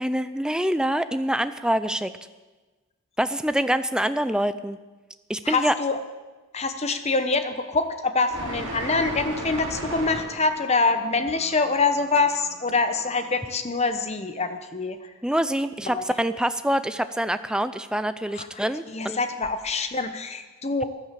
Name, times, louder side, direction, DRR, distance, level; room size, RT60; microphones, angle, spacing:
voice 1, 0.0-2.1 3.2-4.8 5.3-5.7 15.2-19.2, right 1 dB, 5° right, 11 dB, 0.5 m, -25 dB
voice 2, 5.4-6.0 6.5-15.1 15.8-16.0 18.3-18.5 18.9-20.8, left 3 dB, 30° left, 9 dB, 1.0 m, -25 dB
sound 1, 8.3-13.4, right 1 dB, 55° right, 4.2 m, -37 dB
14.5 x 11.5 x 7.6 m, 1.2 s
head